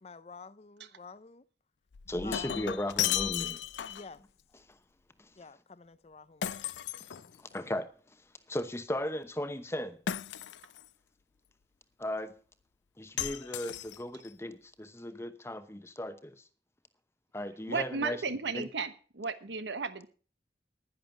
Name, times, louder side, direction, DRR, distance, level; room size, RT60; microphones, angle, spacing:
voice 1, 0.0-1.4 2.2-2.7 3.9-4.2 5.4-6.7, left 4 dB, 35° left, 0.5 m, -49 dB
Shatter, 1.9-4.2 6.4-7.7 10.1-10.9 13.2-14.3, left 10 dB, 85° left, 0.5 m, -35 dB
voice 2, 2.1-3.6 5.2-5.3 7.4-7.9 8.5-10.0 12.0-12.3 13.0-16.4 17.3-18.2 18.5-18.7, left 1 dB, 15° left, 0.9 m, -36 dB
voice 3, 17.7-20.1, right 4 dB, 90° right, 1.1 m, -34 dB
10.5 x 10.5 x 5.9 m
head